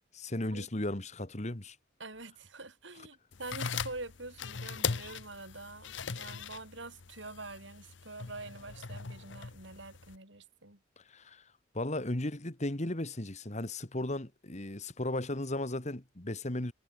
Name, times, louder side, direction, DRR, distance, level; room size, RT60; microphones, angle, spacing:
voice 1, 0.1-1.8 11.0-11.5 11.7-16.7, left 1 dB, 35° left, 1.9 m, -35 dB
voice 2, 2.0-10.8, right 2 dB, 65° right, 5.7 m, -46 dB
sound 1, 3.3-10.2, left 6 dB, 65° left, 0.9 m, -40 dB
head